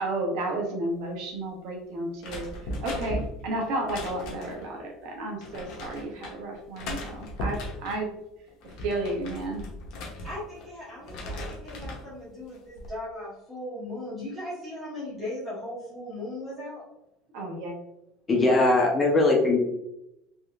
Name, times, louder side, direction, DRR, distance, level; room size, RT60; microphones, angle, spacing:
voice 1, 0.0-2.5 2.8-8.1 8.8-9.7 17.3-17.7, right 2 dB, 65° right, 1 dB, 1.0 m, -32 dB
sound 1, 2.2-4.7 5.4-6.4 6.7-8.0 8.5-10.7 11.0-12.1 12.5-12.9, left 1 dB, 60° left, 0.7 m, -37 dB
voice 2, 10.2-16.8, left 1 dB, 15° right, -9 dB, 1.2 m, -38 dB
voice 3, 18.3-19.6, left 2 dB, 20° left, -1 dB, 0.6 m, -20 dB
3.4 x 2.9 x 2.3 m, 0.85 s
cardioid pair, 150°, 0 cm